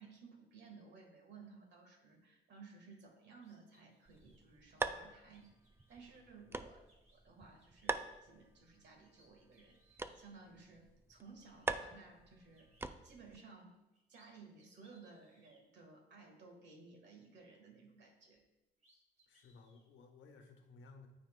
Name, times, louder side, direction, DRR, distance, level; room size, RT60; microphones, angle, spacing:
voice 1, 0.0-5.6 5.9-6.8 7.1-12.7 13.0-13.8 14.1-18.4, right 4 dB, 60° right, 3 dB, 1.6 m, -58 dB
sound 1, 3.4-4.4 5.3-6.2 6.9-7.2 7.6-8.1 8.7-8.8 9.0-10.3 11.1-11.2 11.4-11.8 12.5-12.9 13.7-14.3 14.6-15.6 18.3-18.4 18.8-19.9, right 1 dB, 35° right, 2.1 m, -72 dB
sound 2, 4.1-13.4, right 3 dB, 10° right, 0.3 m, -45 dB
voice 2, 19.3-21.1, left 4 dB, 75° left, 4 dB, 1.0 m, -59 dB
12.5 x 4.3 x 2.2 m, 0.99 s
cardioid pair, 90°, 20 cm